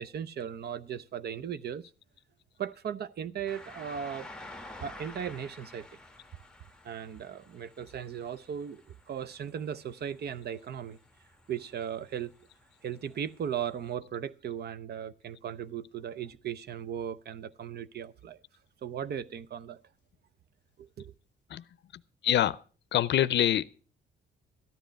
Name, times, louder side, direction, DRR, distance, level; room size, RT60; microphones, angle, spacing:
voice 1, 0.0-1.8 2.6-4.3 4.8-5.9 6.8-11.0 11.5-12.3 12.8-18.4 18.8-19.8 20.8-21.1, right 8 dB, 55° right, 0.7 m, -37 dB
sound 1, 3.5-13.9, left 2 dB, 5° left, 1.1 m, -51 dB
voice 2, 22.2-22.6 22.9-23.8, left 11 dB, 60° left, 0.6 m, -25 dB
13.5 x 10.0 x 5.1 m
cardioid pair, 90°, 20 cm